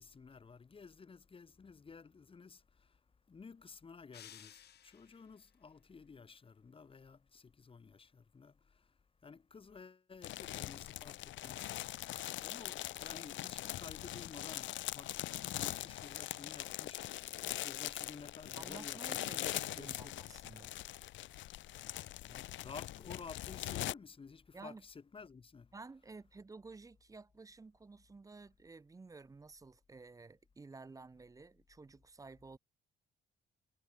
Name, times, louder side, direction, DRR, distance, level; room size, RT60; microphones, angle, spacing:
voice 1, 0.0-3.0 3.3-20.2 22.3-25.7, left 5 dB, 25° left, 0.9 m, -54 dB
sound 1, 4.1-5.4, left 10 dB, 55° left, 0.9 m, -56 dB
sound 2, 10.2-23.9, left 14 dB, 70° left, 0.5 m, -42 dB
voice 2, 18.6-20.7 24.5-24.8 25.7-32.6, right 3 dB, 15° right, 0.5 m, -53 dB
cardioid pair, 90°, 20 cm